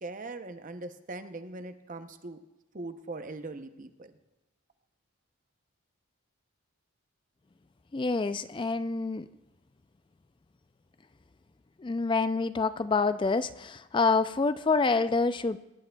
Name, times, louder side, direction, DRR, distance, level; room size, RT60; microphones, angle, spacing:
voice 1, 0.0-2.4 2.7-4.2, right 2 dB, 35° right, 9 dB, 0.7 m, -41 dB
voice 2, 7.9-9.3 11.8-15.6, left 4 dB, 20° left, 13 dB, 0.3 m, -27 dB
21.5 x 11.0 x 2.3 m, 1.0 s
head